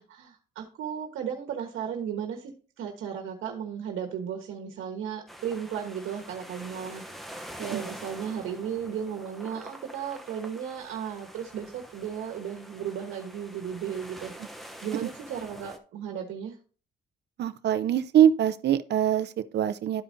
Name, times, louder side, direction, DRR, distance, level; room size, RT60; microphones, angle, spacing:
voice 1, 0.0-16.5, right 8 dB, 80° right, 1.3 m, -35 dB
sound 1, 5.3-15.8, equal, ahead, 0.8 m, -45 dB
voice 2, 17.4-20.0, right 10 dB, 60° right, 0.6 m, -23 dB
12.5 x 4.9 x 2.7 m
cardioid pair, 90°, 20 cm